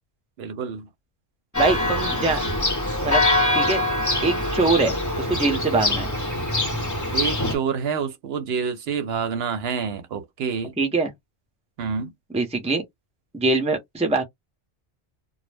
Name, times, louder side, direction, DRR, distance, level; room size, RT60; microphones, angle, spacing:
voice 1, 0.4-0.9 7.1-10.7 11.8-12.1, right 6 dB, 70° right, 0.8 m, -27 dB
Church bell, 1.5-7.6, left 1 dB, 20° left, 0.8 m, -24 dB
voice 2, 1.6-2.4 3.0-3.2 3.5-3.8 4.2-4.9 5.2-6.1 10.8-11.1 12.3-12.8 13.3-14.2, right 3 dB, 10° right, 0.5 m, -23 dB
2.1 x 2.0 x 3.2 m
omnidirectional pair, 1.1 m